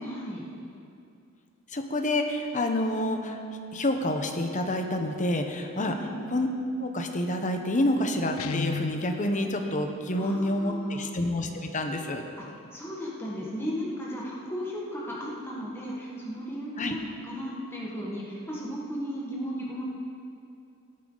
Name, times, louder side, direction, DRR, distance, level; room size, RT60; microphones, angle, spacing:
voice 1, 0.0-0.5 5.8-6.1 10.2-11.1 12.4-12.5 12.7-19.9, equal, 10° left, -5 dB, 1.8 m, -35 dB
voice 2, 1.7-3.4 3.7-5.9 6.3-6.5 6.8-12.2 16.8-16.9, left 1 dB, 35° left, 4 dB, 1.0 m, -28 dB
Guitar, 8.4-9.2, left 5 dB, 70° left, 0.4 m, -32 dB
17.5 x 9.1 x 4.0 m, 2.5 s
head